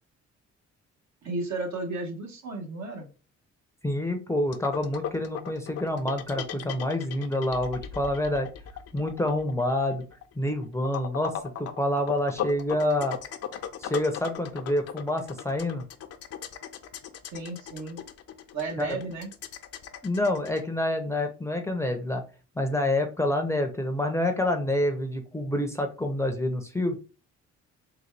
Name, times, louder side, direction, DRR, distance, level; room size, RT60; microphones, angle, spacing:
voice 1, 1.2-3.1 17.3-18.0 18.5-19.3, right 3 dB, 65° right, 2 dB, 1.2 m, -33 dB
voice 2, 3.8-8.5 8.9-10.0 10.4-13.2 13.8-15.8 18.8-19.0 20.0-22.2 22.6-27.0, left 1 dB, 10° left, 4 dB, 0.6 m, -27 dB
sound 1, 4.5-20.6, left 9 dB, 55° left, 0.5 m, -37 dB
3.9 x 2.3 x 3.2 m, 0.33 s
cardioid pair, 90°, 30 cm